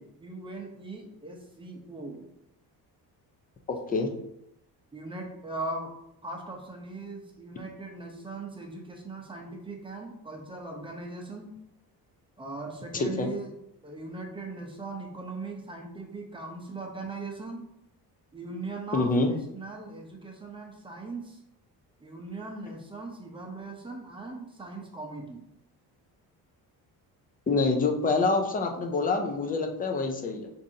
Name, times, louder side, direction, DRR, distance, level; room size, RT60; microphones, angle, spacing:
voice 1, 0.0-2.3 4.9-5.9 6.2-11.5 12.4-13.5 13.8-17.6 18.3-21.4 22.0-25.4, right 2 dB, 15° right, 1 dB, 0.7 m, -39 dB
voice 2, 3.7-4.1 13.0-13.3 18.9-19.3 27.5-30.5, left 3 dB, 20° left, 4 dB, 0.5 m, -26 dB
6.6 x 2.7 x 2.7 m, 0.81 s
cardioid pair, 150°, 39 cm